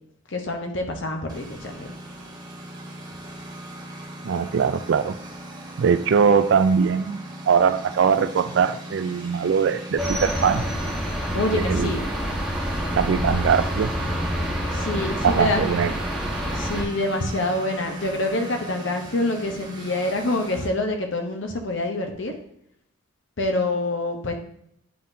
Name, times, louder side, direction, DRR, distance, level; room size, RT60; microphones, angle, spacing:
voice 1, 0.3-1.9 11.3-12.1 14.7-15.7 16.5-22.4 23.4-24.3, left 2 dB, 60° left, 3 dB, 0.8 m, -26 dB
Engine, 1.3-20.7, right 1 dB, 20° right, 0.9 m, -38 dB
voice 2, 4.2-5.2 5.8-10.7 11.5-12.0 12.9-13.9 15.2-15.9, right 6 dB, 60° right, 11 dB, 0.3 m, -21 dB
sound 1, 10.0-16.8, equal, ahead, 1.2 m, -27 dB
10.5 x 3.7 x 2.7 m, 0.70 s
head